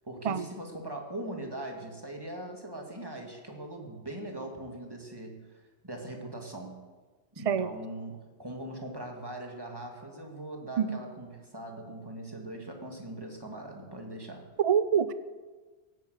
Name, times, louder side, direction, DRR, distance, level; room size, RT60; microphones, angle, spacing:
voice 1, 0.0-6.8 7.3-14.5, right 1 dB, 20° right, 1 dB, 2.5 m, -41 dB
voice 2, 14.6-15.1, right 7 dB, 40° right, 14 dB, 0.7 m, -25 dB
17.0 x 9.4 x 8.1 m, 1.3 s
omnidirectional pair, 1.1 m